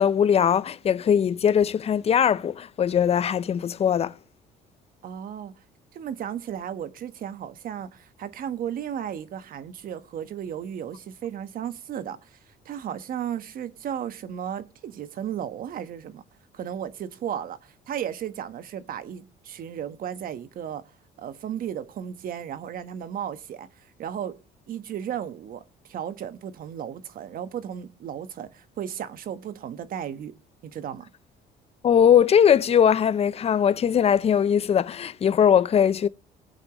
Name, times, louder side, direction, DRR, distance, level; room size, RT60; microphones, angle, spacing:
voice 1, 0.0-4.1 31.8-36.1, left 8 dB, 35° left, 0.6 m, -20 dB
voice 2, 5.0-5.5 5.9-12.4 12.6-16.2 16.5-20.8 21.2-24.4 24.7-30.3 30.6-31.1, right 9 dB, 55° right, 1.2 m, -34 dB
20.0 x 8.2 x 3.0 m
cardioid pair, 110°, 17 cm